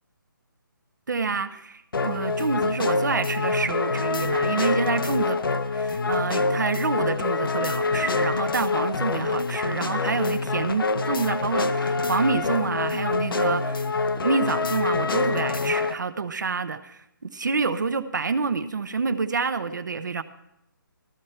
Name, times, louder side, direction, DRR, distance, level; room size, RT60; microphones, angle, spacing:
voice 1, 1.1-5.4 5.7-13.9 14.2-20.2, right 4 dB, 55° right, 11 dB, 0.8 m, -27 dB
sound 1, 1.9-15.9, left 4 dB, 85° left, 0.8 m, -26 dB
14.0 x 13.5 x 4.3 m, 0.81 s
hypercardioid pair, 180°, 12 cm